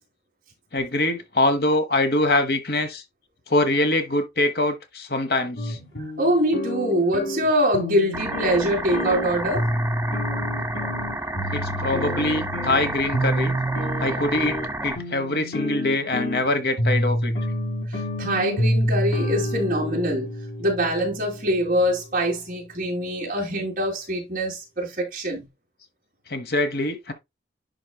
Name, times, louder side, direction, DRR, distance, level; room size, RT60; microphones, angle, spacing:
voice 1, 0.7-3.0 3.5-5.8 11.5-13.6 14.0-14.6 14.8-17.3 26.3-27.1, left 2 dB, 55° left, 1.1 m, -23 dB
sound 1, 5.6-21.8, equal, 90° left, 3.0 m, -28 dB
voice 2, 6.2-9.7 17.9-20.3 20.6-25.5, equal, 45° right, 2.9 m, -24 dB
sound 2, 8.1-14.9, right 1 dB, 10° right, 0.6 m, -31 dB
10.5 x 4.5 x 2.3 m
head